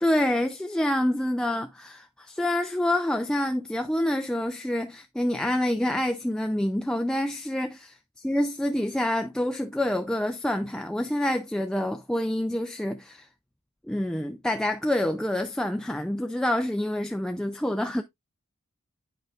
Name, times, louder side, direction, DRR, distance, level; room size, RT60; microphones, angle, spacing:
voice 1, 0.0-7.7 8.2-13.3 13.9-18.0, left 1 dB, 5° left, 0.3 m, -27 dB
10.5 x 4.6 x 2.3 m
head